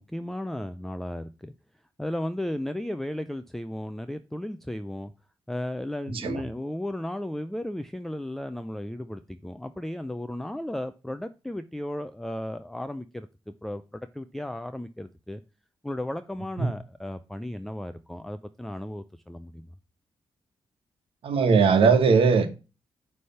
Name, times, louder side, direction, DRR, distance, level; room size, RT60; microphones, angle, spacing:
voice 1, 0.0-1.5 2.0-5.1 5.5-13.3 13.6-15.4 15.8-19.7, left 1 dB, 5° left, 0.3 m, -34 dB
voice 2, 6.1-6.4 16.6-16.7 21.2-22.5, right 5 dB, 75° right, 1.3 m, -20 dB
9.6 x 3.3 x 5.6 m
wide cardioid pair, 175°, 9 cm